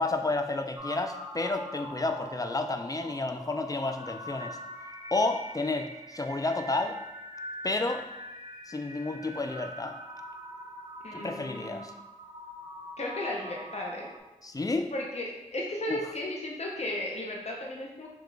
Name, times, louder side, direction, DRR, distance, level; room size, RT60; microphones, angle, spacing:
voice 1, 0.0-4.6 5.1-7.0 7.6-8.1 8.7-10.0 11.1-11.9 14.4-14.9 15.9-16.0, left 2 dB, 25° left, 6 dB, 0.4 m, -31 dB
sound 1, 0.7-14.2, equal, 35° right, 1.0 m, -43 dB
voice 2, 11.0-11.9 13.0-14.1 14.9-18.1, left 1 dB, 55° left, -2 dB, 0.7 m, -35 dB
5.1 x 2.4 x 3.2 m, 1.0 s
wide cardioid pair, 60°, 13 cm